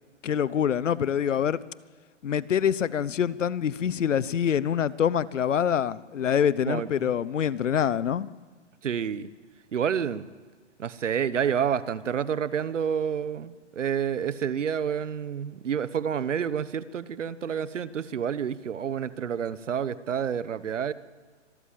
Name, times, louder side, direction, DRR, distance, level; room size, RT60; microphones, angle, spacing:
voice 1, 0.2-1.6 2.2-8.3, left 8 dB, 80° left, 1.0 m, -25 dB
voice 2, 6.7-7.1 8.8-9.3 9.7-10.3 10.8-20.9, right 8 dB, 80° right, 1.2 m, -29 dB
25.5 x 14.0 x 7.6 m
hypercardioid pair, 145°, 37 cm